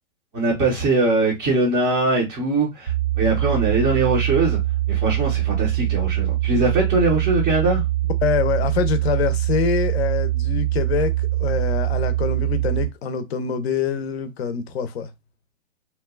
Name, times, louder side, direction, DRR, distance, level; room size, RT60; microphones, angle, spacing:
voice 1, 0.3-4.6 4.9-7.8, right 2 dB, 10° right, 0.4 m, -21 dB
sound 1, 2.9-12.9, right 15 dB, 75° right, 0.6 m, -23 dB
voice 2, 8.2-15.1, left 6 dB, 55° left, 0.6 m, -25 dB
2.8 x 2.2 x 2.2 m
hypercardioid pair, 125°, 38 cm